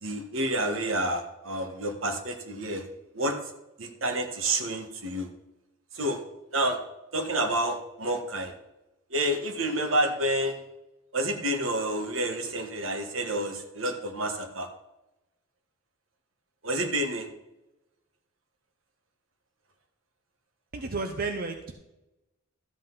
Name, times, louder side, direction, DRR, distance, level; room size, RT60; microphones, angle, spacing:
voice 1, 0.0-2.8 3.1-3.4 3.8-5.3 5.9-6.2 6.5-6.8 7.1-8.5 9.1-10.6 11.1-14.7 16.6-17.3, right 1 dB, 75° right, 5 dB, 1.4 m, -29 dB
voice 2, 20.7-21.7, right 3 dB, 45° right, 4 dB, 0.7 m, -32 dB
13.0 x 7.7 x 4.0 m, 0.97 s
head